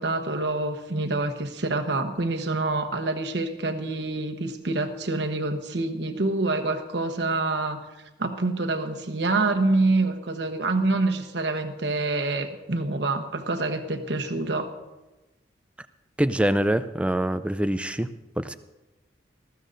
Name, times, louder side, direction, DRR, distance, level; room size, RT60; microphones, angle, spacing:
voice 1, 0.0-7.8 8.2-14.7, right 2 dB, 70° right, 5 dB, 1.1 m, -26 dB
voice 2, 16.2-18.1 18.4-18.5, right 1 dB, 5° right, 12 dB, 0.4 m, -24 dB
20.0 x 14.5 x 2.6 m, 1.1 s
head